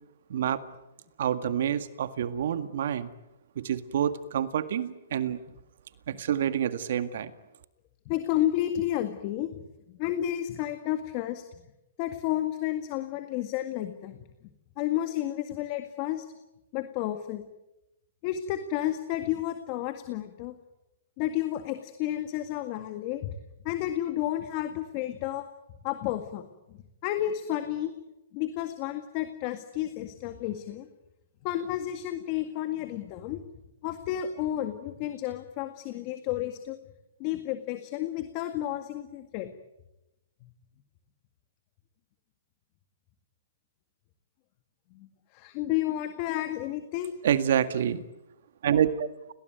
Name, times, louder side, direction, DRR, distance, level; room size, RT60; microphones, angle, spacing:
voice 1, 0.3-0.6 1.2-3.1 3.6-5.4 6.1-7.3 47.2-48.0 48.6-49.1, right 9 dB, 65° right, 11 dB, 1.9 m, -27 dB
voice 2, 8.1-9.5 9.9-11.4 12.0-14.2 14.8-16.3 16.7-17.4 18.2-20.5 21.2-23.3 23.6-25.4 25.8-27.9 28.3-30.9 31.4-33.4 33.8-36.8 37.2-39.5 40.4-40.5 44.9-47.1, left 13 dB, 35° left, 8 dB, 1.9 m, -31 dB
29.0 x 19.5 x 9.4 m, 0.92 s
hypercardioid pair, 150°, 0 cm